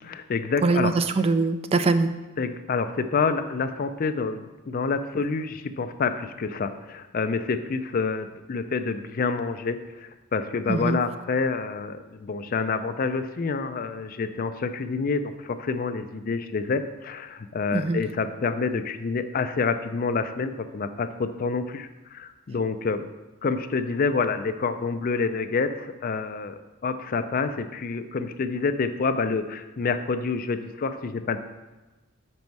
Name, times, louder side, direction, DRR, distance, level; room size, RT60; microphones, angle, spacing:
voice 1, 0.0-0.9 2.4-23.1 23.4-31.5, left 4 dB, 45° left, 9 dB, 0.4 m, -28 dB
voice 2, 0.6-2.1 10.7-11.0 17.7-18.0, right 3 dB, 30° right, 10 dB, 0.3 m, -22 dB
5.4 x 5.2 x 4.6 m, 1.1 s
head